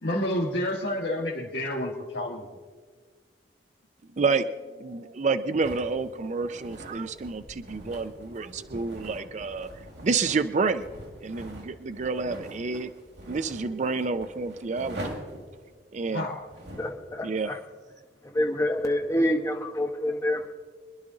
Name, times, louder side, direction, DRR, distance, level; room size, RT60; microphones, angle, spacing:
voice 1, 0.0-2.5 16.1-16.4, left 1 dB, 85° left, -4 dB, 1.8 m, -29 dB
voice 2, 4.2-9.7 10.0-12.9 13.3-15.2 15.9-16.3 17.2-17.5, right 4 dB, 40° right, 11 dB, 0.4 m, -29 dB
sound 1, 5.6-17.0, right 1 dB, 75° right, 2.7 m, -43 dB
voice 3, 16.8-17.6 18.3-20.5, left 1 dB, 15° left, 2 dB, 1.0 m, -27 dB
25.0 x 11.0 x 3.8 m, 1.5 s
head